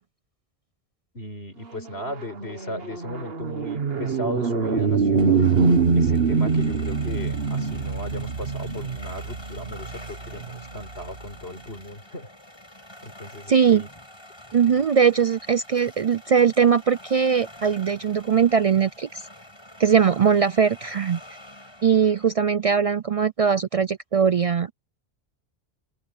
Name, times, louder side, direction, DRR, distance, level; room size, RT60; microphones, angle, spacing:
voice 1, 1.1-5.4 5.9-12.3 13.0-13.9 14.7-14.8, left 1 dB, 90° left, 5.4 m, -36 dB
sound 1, 1.8-11.3, right 5 dB, 70° right, 1.7 m, -24 dB
sound 2, 4.8-22.3, left 1 dB, 25° left, 8.1 m, -46 dB
voice 2, 13.5-13.8 14.5-19.2 19.8-21.2 21.8-24.7, right 7 dB, 50° right, 0.4 m, -20 dB
open air
omnidirectional pair, 1.0 m